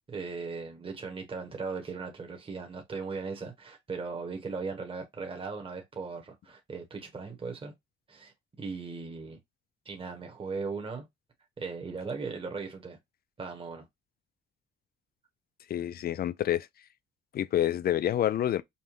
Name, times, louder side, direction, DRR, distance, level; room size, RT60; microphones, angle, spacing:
voice 1, 0.1-7.7 8.1-9.4 9.8-11.1 11.6-13.0 13.4-13.8, right 4 dB, 25° right, 1.2 m, -38 dB
voice 2, 15.7-16.7 17.3-18.6, left 11 dB, 50° left, 0.4 m, -28 dB
5.5 x 2.1 x 3.0 m
cardioid pair, 90°, 20 cm